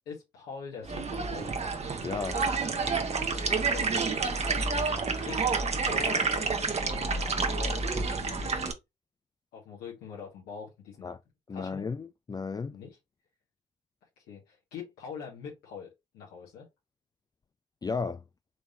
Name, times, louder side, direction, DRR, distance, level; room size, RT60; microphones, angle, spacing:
voice 1, 0.1-1.6 3.5-4.9 5.1-5.4 5.8-8.6 9.5-11.2 11.5-11.9 12.7-13.0 14.2-16.7, left 6 dB, 80° left, 1.8 m, -44 dB
sound 1, 0.8-8.7, right 4 dB, 40° right, 1.2 m, -29 dB
voice 2, 2.0-2.4 11.0-11.2 11.5-12.8 17.8-18.2, left 4 dB, 25° left, 0.4 m, -34 dB
4.9 x 3.5 x 2.6 m
hypercardioid pair, 45°, 16 cm